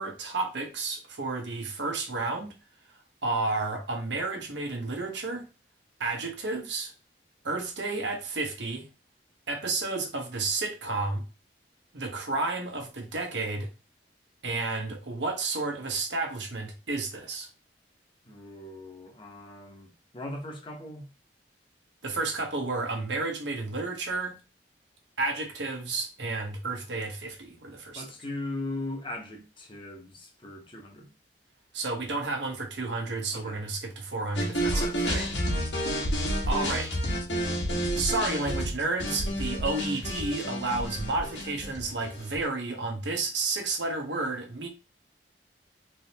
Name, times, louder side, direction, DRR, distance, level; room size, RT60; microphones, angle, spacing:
voice 1, 0.0-2.5 3.2-5.5 6.0-6.9 7.4-8.9 9.5-11.2 11.9-13.7 14.4-17.5 22.0-24.4 25.2-28.0 31.7-35.3 36.4-37.0 38.0-44.7, right 3 dB, 90° right, 1.2 m, -31 dB
voice 2, 18.2-19.9 20.1-21.1 27.9-31.1 33.3-33.6 34.7-35.0 36.0-36.1, left 2 dB, 30° left, 1.0 m, -39 dB
sound 1, 34.3-42.4, equal, 80° left, 1.5 m, -30 dB
3.7 x 3.4 x 2.9 m
head